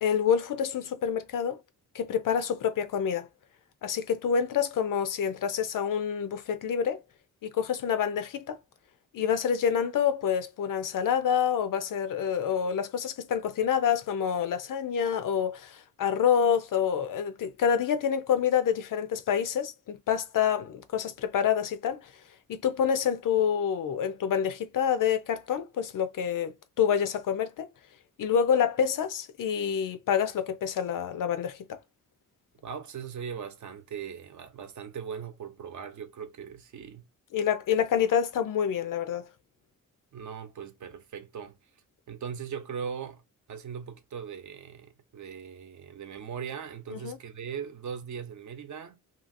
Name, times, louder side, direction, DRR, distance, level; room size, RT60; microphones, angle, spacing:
voice 1, 0.0-1.6 1.9-3.3 3.8-7.0 7.4-8.6 9.1-22.1 22.5-26.5 26.8-27.7 28.2-31.8 37.3-39.3 46.9-47.2, left 8 dB, 70° left, 0.6 m, -27 dB
voice 2, 32.6-37.1 40.1-41.6 42.1-43.2 43.5-49.0, right 7 dB, 60° right, 0.7 m, -39 dB
2.8 x 2.8 x 2.6 m
wide cardioid pair, 140°, 33 cm